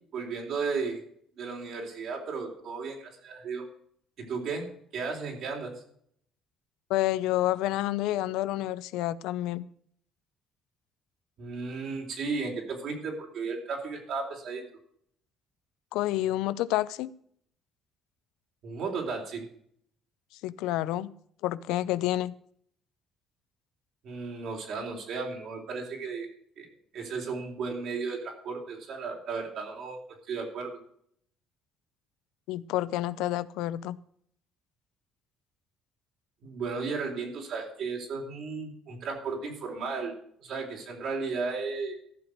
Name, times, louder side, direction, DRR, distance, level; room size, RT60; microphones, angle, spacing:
voice 1, 0.1-1.0 1.4-3.6 4.2-4.7 4.9-5.7 11.4-14.6 18.6-19.4 24.0-26.3 26.6-26.7 26.9-30.0 30.3-30.8 36.4-40.1 40.4-42.0, right 4 dB, 60° right, 4.0 m, -34 dB
voice 2, 6.9-9.6 15.9-17.1 20.4-21.1 21.4-22.3 32.5-34.0, left 15 dB, 85° left, 0.5 m, -29 dB
14.5 x 6.1 x 6.6 m
cardioid pair, 110°, 0 cm